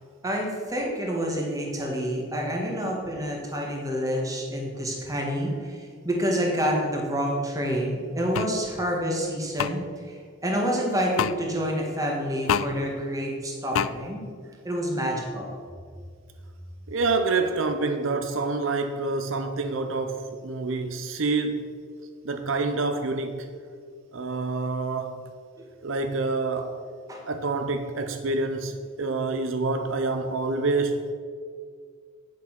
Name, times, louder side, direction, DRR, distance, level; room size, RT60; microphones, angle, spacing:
voice 1, 0.2-14.2 14.6-15.5 27.1-27.3, equal, 15° right, 1.7 m, -28 dB
sound 1, 8.3-8.5 9.6-9.7 11.2-11.4 12.5-12.7 13.7-13.9, left 8 dB, 90° left, 0.4 m, -24 dB
voice 2, 16.9-21.7 22.2-23.5 24.1-25.3 25.8-26.8 27.3-31.0, right 3 dB, 75° right, 0.7 m, -27 dB
8.9 x 7.4 x 5.9 m
head